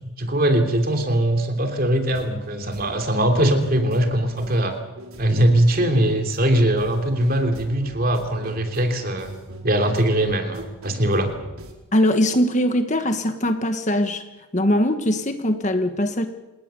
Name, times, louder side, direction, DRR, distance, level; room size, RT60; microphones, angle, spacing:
voice 1, 0.2-4.8 5.2-9.3 9.6-11.3, right 1 dB, 40° right, 5 dB, 3.1 m, -21 dB
sound 1, 2.1-11.7, right 1 dB, 75° right, 4.5 m, -42 dB
voice 2, 11.9-14.2 14.5-16.3, left 1 dB, 35° left, 7 dB, 1.5 m, -21 dB
28.0 x 19.0 x 7.0 m, 1.1 s
head